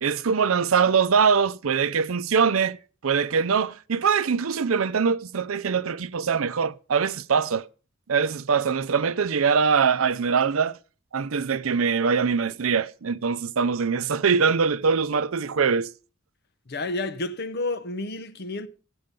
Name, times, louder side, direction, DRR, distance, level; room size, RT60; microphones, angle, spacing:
voice 1, 0.0-2.8 3.0-7.7 8.1-10.8 11.1-15.9, right 6 dB, 80° right, 0.6 m, -23 dB
voice 2, 16.7-18.7, left 2 dB, 50° left, 0.9 m, -30 dB
15.0 x 7.8 x 5.3 m
head